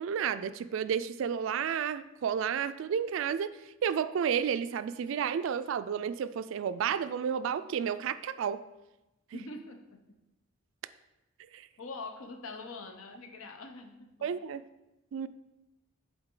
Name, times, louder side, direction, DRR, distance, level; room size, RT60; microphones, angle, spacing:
voice 1, 0.0-8.6 9.3-9.4 11.5-11.7 14.2-14.6 15.1-15.3, right 7 dB, 65° right, 14 dB, 0.3 m, -31 dB
voice 2, 9.3-10.0 11.8-14.3, left 3 dB, 85° left, 5 dB, 0.8 m, -44 dB
7.9 x 3.9 x 3.7 m, 1.0 s
head